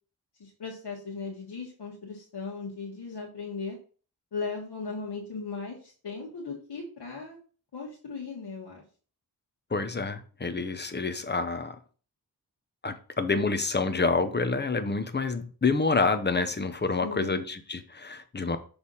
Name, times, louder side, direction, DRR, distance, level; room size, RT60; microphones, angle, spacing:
voice 1, 0.4-3.8 4.3-7.4 7.7-8.8 17.0-17.4, left 4 dB, 80° left, -4 dB, 1.6 m, -37 dB
voice 2, 9.7-11.8 12.8-18.6, left 4 dB, 25° left, 10 dB, 0.8 m, -28 dB
6.4 x 3.5 x 5.5 m, 0.40 s
wide cardioid pair, 85°, 40 cm